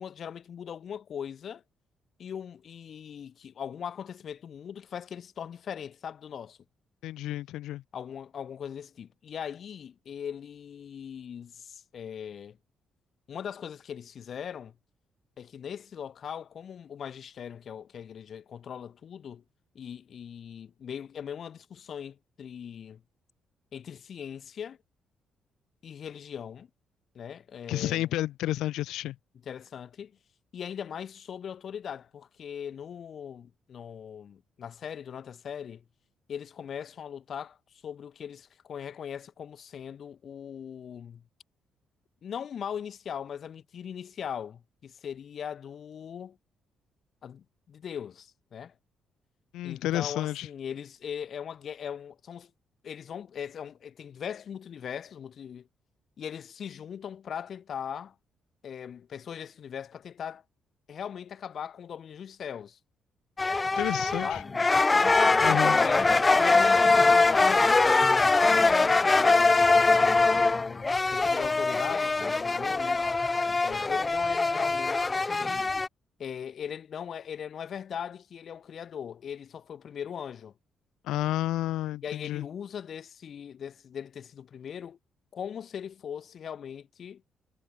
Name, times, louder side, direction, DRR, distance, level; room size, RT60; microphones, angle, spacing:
voice 1, 0.0-1.6 2.2-6.6 7.9-12.6 13.3-14.7 15.4-19.4 19.7-23.0 23.7-24.8 25.8-26.7 27.1-28.1 29.4-30.2 30.5-35.8 36.3-37.6 37.8-41.2 42.2-46.4 47.2-48.7 49.6-52.5 52.8-55.7 56.2-58.1 58.6-60.4 60.9-62.8 64.2-64.7 65.6-69.8 70.2-73.0 73.6-75.7 76.2-80.5 82.0-85.0 85.3-87.2, left 8 dB, 55° left, 1.5 m, -40 dB
voice 2, 7.0-7.8 27.7-29.2 49.5-50.5 63.8-64.4 65.4-65.8 81.0-82.5, left 14 dB, 90° left, 0.8 m, -30 dB
sound 1, 63.4-75.9, left 3 dB, 25° left, 0.4 m, -23 dB
cardioid pair, 90°, 0 cm